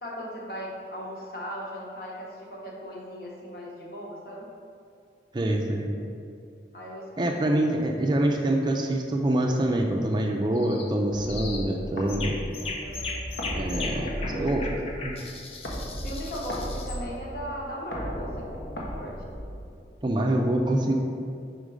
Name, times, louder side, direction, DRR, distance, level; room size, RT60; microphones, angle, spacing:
voice 1, 0.0-4.5 6.7-7.9 12.8-13.2 13.7-14.7 16.0-18.5 18.8-19.2, equal, 55° left, -3 dB, 1.2 m, -38 dB
voice 2, 5.3-5.9 7.2-12.4 13.5-14.6 15.0-15.2 20.0-20.9, right 1 dB, 25° right, 2 dB, 0.4 m, -25 dB
sound 1, 10.6-10.9 11.3-11.7 12.1-17.0, left 3 dB, 35° left, 0.5 m, -37 dB
sound 2, 11.1-20.1, equal, 80° left, 1.1 m, -35 dB
5.1 x 4.4 x 4.9 m, 2.5 s
head